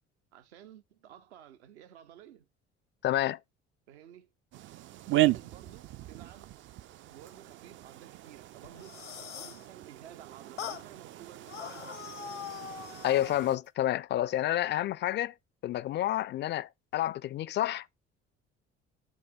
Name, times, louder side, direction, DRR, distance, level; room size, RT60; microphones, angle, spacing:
voice 1, 0.3-2.5 3.9-4.3 5.1-6.5 7.1-11.9, right 10 dB, 70° right, 0.9 m, -53 dB
voice 2, 3.0-3.4 13.0-15.3 15.6-17.9, left 13 dB, 35° left, 0.4 m, -29 dB
sound 1, 4.5-13.6, right 17 dB, 35° right, 0.4 m, -36 dB
sound 2, 8.6-9.6 10.6-10.9 11.5-13.4, left 8 dB, 85° left, 0.8 m, -42 dB
11.0 x 3.9 x 3.6 m
figure-of-eight pair, 55°, 35 cm